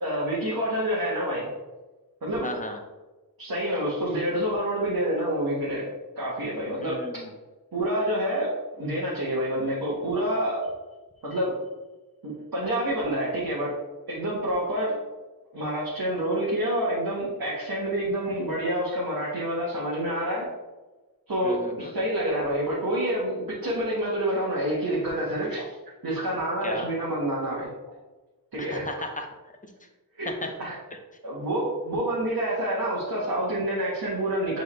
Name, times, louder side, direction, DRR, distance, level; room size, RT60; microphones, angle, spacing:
voice 1, 0.0-1.5 2.2-2.5 3.4-5.9 6.2-7.0 7.7-10.7 11.2-11.6 12.2-13.8 14.1-14.9 15.5-20.5 21.3-25.8 26.0-27.7 28.5-28.8 30.2-30.3 30.6-30.8 31.2-34.6, right 1 dB, 70° right, -7 dB, 1.6 m, -27 dB
voice 2, 2.4-2.8 6.8-7.3 21.4-21.9 26.6-26.9 28.6-29.3 29.6-29.7 30.2-30.5, left 1 dB, 20° left, 3 dB, 0.8 m, -35 dB
7.5 x 3.9 x 3.3 m, 1.2 s
wide cardioid pair, 105°, 37 cm